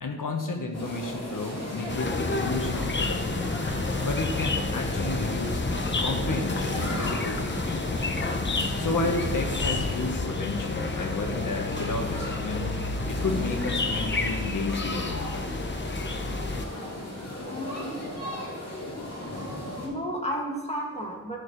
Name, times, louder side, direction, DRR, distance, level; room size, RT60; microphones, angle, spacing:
voice 1, 0.0-3.6 4.0-5.6 6.0-7.8 8.8-12.8 13.1-15.6, left 3 dB, 85° left, 3 dB, 1.4 m, -32 dB
sound 1, 0.7-19.9, left 1 dB, 55° left, 3.0 m, -36 dB
sound 2, 1.9-16.6, left 3 dB, 35° left, 0.9 m, -30 dB
voice 2, 17.4-18.0 18.4-18.5 19.8-21.4, equal, 20° left, -2 dB, 2.2 m, -33 dB
13.0 x 6.4 x 3.3 m, 1.3 s
wide cardioid pair, 65°, 32 cm